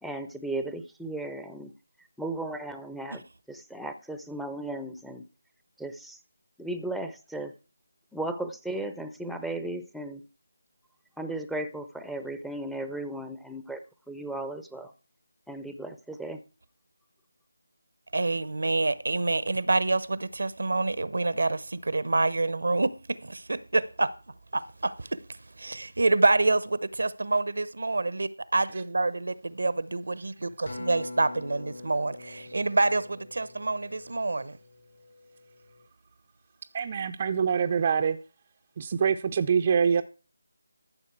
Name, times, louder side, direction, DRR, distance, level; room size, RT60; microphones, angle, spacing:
voice 1, 0.0-1.7 2.2-3.2 3.5-5.2 5.8-6.2 6.6-7.5 8.1-10.2 11.2-13.8 14.1-14.9 15.5-16.4, right 2 dB, ahead, 0.8 m, -35 dB
voice 2, 18.1-24.1 24.5-25.2 25.6-30.5 30.9-34.6, right 2 dB, 65° right, 0.9 m, -27 dB
Acoustic guitar, 30.7-35.1 35.7-35.9, left 2 dB, 60° left, 4.3 m, -43 dB
voice 3, 36.7-38.2 38.8-40.0, right 6 dB, 30° right, 0.6 m, -25 dB
14.0 x 7.1 x 4.6 m
figure-of-eight pair, 160°, 0 cm